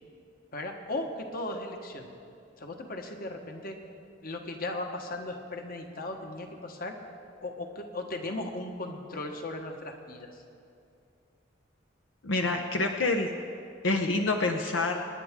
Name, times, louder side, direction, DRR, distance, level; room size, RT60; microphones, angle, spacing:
voice 1, 0.5-2.1 2.6-3.8 4.2-7.0 7.4-10.4, left 2 dB, 50° left, 3 dB, 1.3 m, -37 dB
voice 2, 12.2-13.3 13.8-15.0, left 2 dB, 80° left, 3 dB, 0.8 m, -27 dB
26.0 x 10.0 x 3.7 m, 2.5 s
head